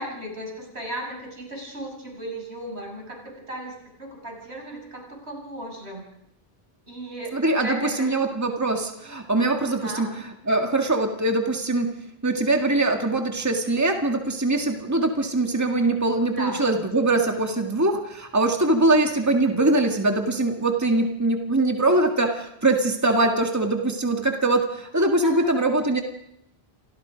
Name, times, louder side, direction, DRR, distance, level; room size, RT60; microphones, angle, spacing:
voice 1, 0.0-3.2 3.5-6.0 6.9-7.3 7.6-8.1 9.7-10.1 16.3-16.6 25.2-25.6, right 1 dB, 80° right, 0 dB, 7.5 m, -35 dB
voice 2, 7.3-26.0, right 2 dB, 15° right, 3 dB, 1.9 m, -22 dB
29.5 x 25.0 x 5.2 m, 0.79 s
omnidirectional pair, 1.1 m